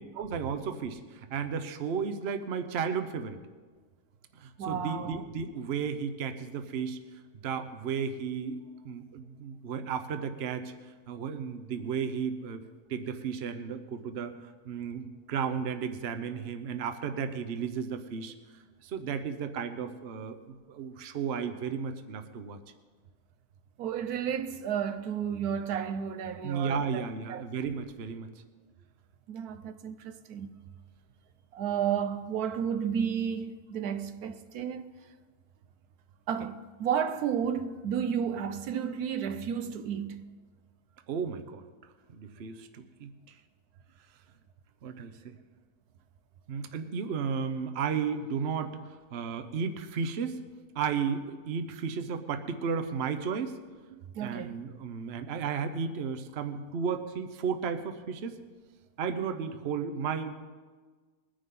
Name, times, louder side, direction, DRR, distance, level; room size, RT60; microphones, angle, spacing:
voice 1, 0.2-3.4 4.4-7.0 7.4-10.6 11.1-12.6 12.9-14.3 14.7-18.3 18.8-22.6 26.4-28.3 41.1-41.6 42.1-43.1 44.8-45.3 46.5-48.8 49.1-50.4 50.7-53.6 54.2-58.4 59.0-60.3, right 6 dB, 50° right, 1.0 m, -33 dB
voice 2, 4.6-5.3 23.8-27.0 27.3-27.4 29.3-30.5 31.5-34.9 36.3-40.2 53.9-54.6, right 8 dB, 80° right, 1.2 m, -32 dB
21.0 x 10.0 x 3.7 m
omnidirectional pair, 1.6 m